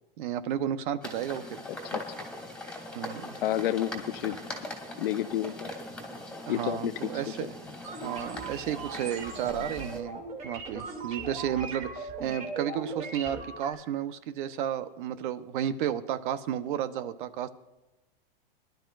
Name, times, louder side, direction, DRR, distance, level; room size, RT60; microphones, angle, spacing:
voice 1, 0.2-1.6 2.9-3.4 6.5-7.6 8.0-17.5, right 10 dB, 60° right, 12 dB, 1.0 m, -32 dB
sound 1, 1.0-10.0, left 1 dB, 5° left, 2.5 m, -41 dB
voice 2, 3.4-4.4 5.0-5.7 6.5-6.9 7.4-7.5, left 13 dB, 70° left, 14 dB, 0.8 m, -29 dB
sound 2, 7.8-13.7, right 3 dB, 25° right, 2.9 m, -39 dB
24.0 x 12.0 x 2.6 m, 1.1 s
supercardioid pair, 140°, 29 cm